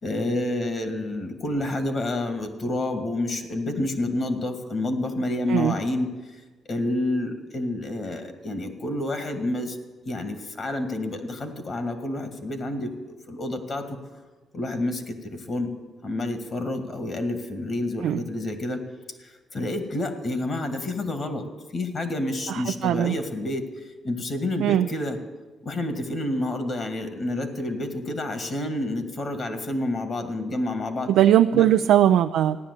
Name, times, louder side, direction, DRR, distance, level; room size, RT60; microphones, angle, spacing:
voice 1, 0.0-6.1 6.7-9.8 10.1-13.8 14.5-15.7 16.0-18.8 19.2-21.4 21.7-23.7 24.0-25.2 25.6-31.1 31.5-31.7, left 1 dB, 45° left, 8 dB, 2.1 m, -29 dB
voice 2, 22.5-23.1 24.6-24.9 31.1-32.6, right 11 dB, 85° right, 8 dB, 0.4 m, -19 dB
14.5 x 10.5 x 8.3 m, 1.3 s
cardioid pair, 90°, 0 cm